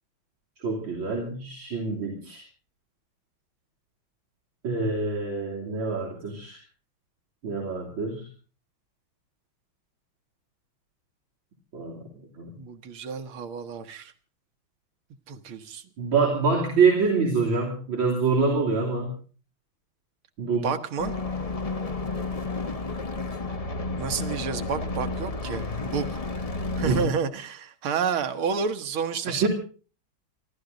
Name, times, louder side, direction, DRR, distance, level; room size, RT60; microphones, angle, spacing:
voice 1, 0.6-2.4 4.6-6.6 7.4-8.3 11.7-12.1 12.4-12.5 16.0-19.1 20.4-20.7 26.9-27.1 29.4-29.5, right 4 dB, 75° right, -3 dB, 3.8 m, -25 dB
voice 2, 12.6-14.1 15.3-15.8 20.6-21.1 24.0-26.2 26.8-29.5, right 6 dB, 90° right, 7 dB, 2.1 m, -30 dB
sound 1, 21.0-27.1, left 3 dB, 30° left, 0.7 m, -31 dB
28.0 x 12.0 x 3.9 m, 0.38 s
omnidirectional pair, 2.2 m